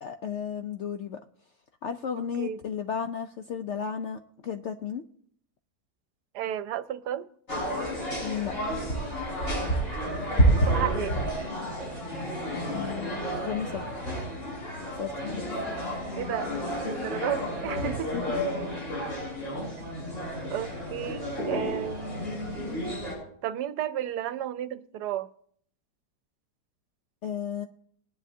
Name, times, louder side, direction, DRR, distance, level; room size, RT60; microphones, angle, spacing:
voice 1, 0.0-1.2 1.8-5.0 8.2-8.5 12.7-13.2 13.4-13.9 14.9-15.4 18.1-18.5 27.2-27.7, left 7 dB, 70° left, 0.6 m, -34 dB
voice 2, 2.1-2.6 6.3-7.3 10.5-11.2 16.1-16.5 16.9-18.1 19.0-19.1 20.5-22.7 23.4-25.3, right 11 dB, 80° right, 1.2 m, -33 dB
sound 1, 7.5-23.2, right 1 dB, 50° left, 6.7 m, -30 dB
21.0 x 9.9 x 2.7 m
omnidirectional pair, 1.8 m